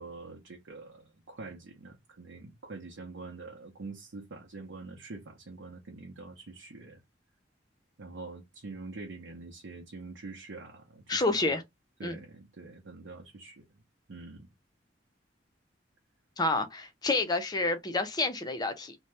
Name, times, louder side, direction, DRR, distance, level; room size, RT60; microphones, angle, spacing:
voice 1, 0.0-7.0 8.0-11.5 12.0-13.7 14.1-14.5, right 3 dB, 90° right, 0.7 m, -45 dB
voice 2, 11.1-11.6 12.0-12.2 16.4-19.0, left 2 dB, 20° left, 0.5 m, -29 dB
2.7 x 2.1 x 3.2 m
head